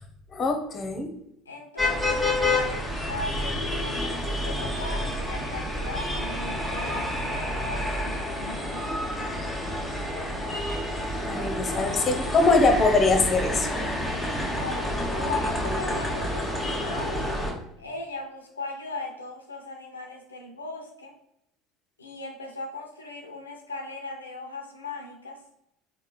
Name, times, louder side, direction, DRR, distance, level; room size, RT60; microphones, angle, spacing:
voice 1, 0.3-1.1 11.3-13.7, left 3 dB, 35° left, 5 dB, 0.7 m, -22 dB
voice 2, 1.5-8.9 11.4-11.9 14.5-17.3 17.8-21.2 22.0-25.4, left 3 dB, 90° left, 2 dB, 0.4 m, -38 dB
sound 1, 1.8-17.5, left 1 dB, ahead, 1.3 m, -29 dB
3.6 x 2.1 x 4.2 m, 0.80 s
figure-of-eight pair, 65°, 0 cm